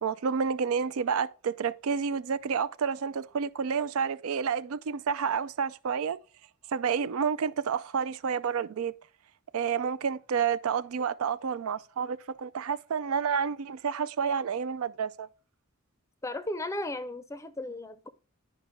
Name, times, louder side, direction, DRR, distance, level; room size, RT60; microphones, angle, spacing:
voice 1, 0.0-6.2 6.7-8.9 9.5-15.3, right 6 dB, 80° right, 0.4 m, -29 dB
voice 2, 16.2-18.1, left 1 dB, 15° left, 0.5 m, -35 dB
10.0 x 5.2 x 3.6 m
head